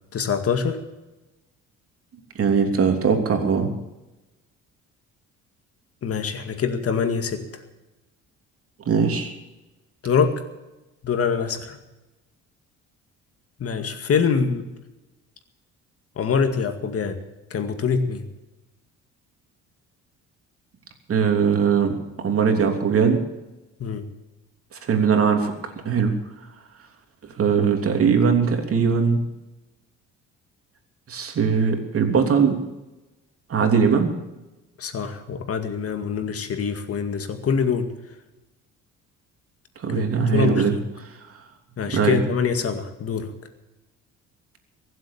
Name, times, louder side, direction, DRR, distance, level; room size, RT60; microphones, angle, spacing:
voice 1, 0.1-0.8 6.0-7.6 10.0-10.4 11.0-11.8 13.6-14.7 16.2-17.2 17.5-18.2 23.8-24.1 34.8-37.9 39.9-40.9 41.8-43.3, left 6 dB, 50° left, 7 dB, 2.1 m, -24 dB
voice 2, 2.3-3.7 8.9-9.3 21.1-23.2 24.7-25.5 25.8-26.1 27.4-29.2 31.1-32.6 33.5-34.1 39.8-40.7 41.9-42.2, right 6 dB, 50° right, 4 dB, 3.1 m, -20 dB
22.5 x 7.9 x 7.2 m, 1.0 s
cardioid pair, 85°, 30 cm